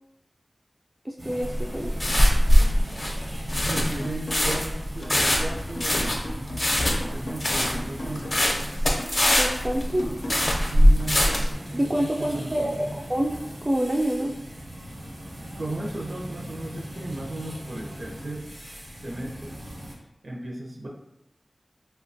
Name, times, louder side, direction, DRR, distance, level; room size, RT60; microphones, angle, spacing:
voice 1, 1.0-1.9 9.3-10.1 11.7-12.8 13.1-13.4 13.7-14.3, right 1 dB, 25° right, 0 dB, 0.3 m, -26 dB
sound 1, 1.2-19.9, equal, 85° right, 1.0 m, -39 dB
sound 2, 1.4-11.5, equal, 45° left, 0.5 m, -21 dB
sound 3, 3.5-4.7 5.0-8.5 9.0-11.5, equal, 85° left, 0.5 m, -39 dB
voice 2, 3.7-6.4 7.1-8.4 10.5-11.2 12.0-12.7 15.6-18.5 19.0-19.6 20.2-20.9, right 1 dB, 70° right, -2 dB, 0.6 m, -35 dB
2.7 x 2.2 x 2.6 m, 0.87 s
wide cardioid pair, 50°, 0 cm